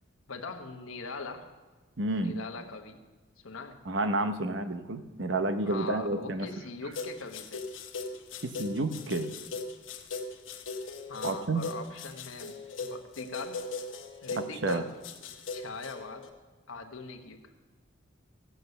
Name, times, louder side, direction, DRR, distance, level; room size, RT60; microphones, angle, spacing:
voice 1, 0.3-1.5 2.1-3.0 3.4-3.8 5.6-7.6 11.1-13.7 14.2-14.9 15.5-16.3 16.7-17.5, left 4 dB, 90° left, 4 dB, 1.1 m, -42 dB
voice 2, 2.0-2.3 3.9-6.5 8.4-9.3 11.2-11.6 14.4-14.8, right 2 dB, 60° right, 9 dB, 0.8 m, -30 dB
sound 1, 6.9-16.3, left 3 dB, 70° left, 1.1 m, -39 dB
15.0 x 8.1 x 6.8 m, 1.3 s
head